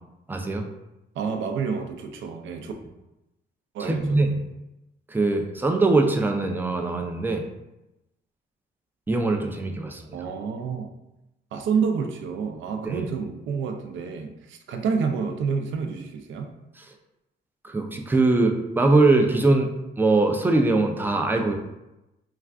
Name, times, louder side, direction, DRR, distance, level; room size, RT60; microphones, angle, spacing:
voice 1, 0.3-0.6 3.8-4.3 5.1-7.4 9.1-10.0 12.8-13.1 17.6-19.7 20.0-21.5, right 2 dB, 10° right, 4 dB, 0.3 m, -22 dB
voice 2, 1.1-2.7 3.7-4.3 10.1-10.9 11.5-16.5, right 5 dB, 75° right, 5 dB, 0.4 m, -29 dB
2.4 x 2.3 x 3.3 m, 0.95 s
cardioid pair, 90°, 20 cm